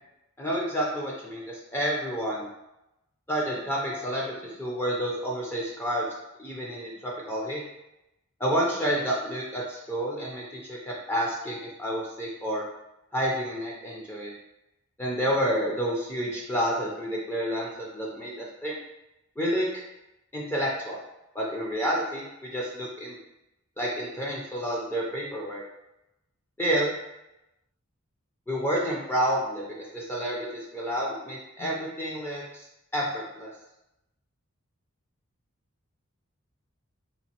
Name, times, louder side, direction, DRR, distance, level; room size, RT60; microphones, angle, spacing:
voice 1, 0.4-2.5 3.3-4.3 4.6-6.1 6.4-7.6 8.4-12.6 13.1-14.3 15.0-18.8 19.4-19.8 20.3-21.0 21.3-23.2 23.8-25.6 26.6-26.9 28.5-29.7 29.9-30.5 30.7-32.6 32.9-33.5, equal, 10° left, -3 dB, 0.5 m, -29 dB
4.0 x 2.6 x 2.9 m, 0.90 s
head